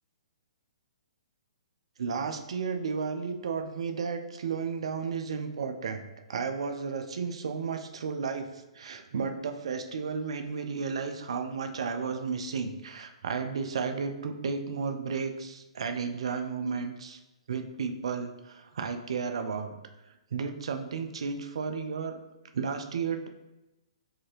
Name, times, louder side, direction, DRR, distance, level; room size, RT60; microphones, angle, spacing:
voice 1, 2.0-6.0 6.3-17.2 17.5-19.8 20.3-22.2 22.5-23.3, right 5 dB, 60° right, 6 dB, 0.5 m, -33 dB
4.8 x 2.8 x 3.2 m, 1.0 s
figure-of-eight pair, 120°, 3 cm